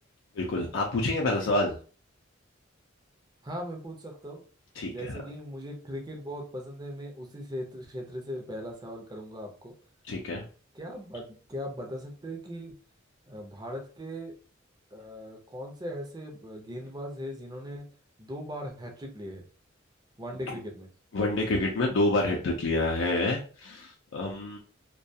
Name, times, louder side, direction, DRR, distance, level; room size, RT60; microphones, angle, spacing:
voice 1, 0.4-1.7 4.8-5.1 10.1-10.5 21.1-24.6, left 2 dB, 75° left, 0 dB, 0.5 m, -28 dB
voice 2, 3.4-4.4 4.9-9.7 10.7-12.7 13.3-14.3 14.9-17.8 18.2-19.4 20.2-20.9, equal, 20° right, 1 dB, 0.6 m, -39 dB
2.3 x 2.2 x 2.7 m, 0.39 s
head